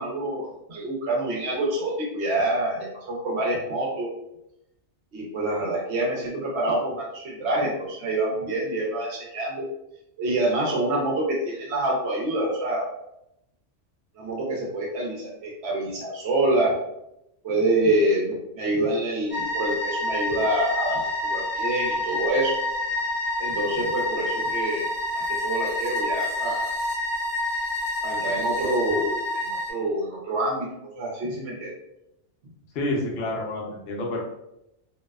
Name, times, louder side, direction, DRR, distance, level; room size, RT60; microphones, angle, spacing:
voice 1, 0.0-4.1 5.1-9.7 10.2-12.8 14.2-16.7 17.4-22.5 23.4-24.9 25.1-26.7 28.0-30.7 31.0-31.7, right 1 dB, 70° right, -2 dB, 0.9 m, -26 dB
sound 1, 19.3-29.7, left 1 dB, 35° right, 0.6 m, -28 dB
voice 2, 32.7-34.2, left 1 dB, 65° left, -1 dB, 0.8 m, -29 dB
2.6 x 2.1 x 2.2 m, 0.84 s
omnidirectional pair, 1.2 m